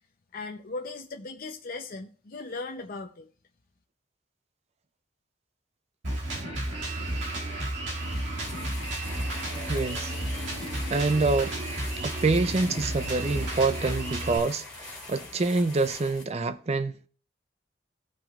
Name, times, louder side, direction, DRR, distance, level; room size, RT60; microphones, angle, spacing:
voice 1, 0.3-3.3, left 3 dB, 45° left, 0.7 m, -38 dB
Drum kit, 6.0-14.4, right 1 dB, 70° right, 2.3 m, -32 dB
sound 1, 7.9-16.2, left 3 dB, 5° left, 2.6 m, -43 dB
voice 2, 9.7-10.1 10.9-11.5 12.0-17.0, right 3 dB, 35° right, 0.4 m, -26 dB
17.5 x 5.9 x 2.4 m
head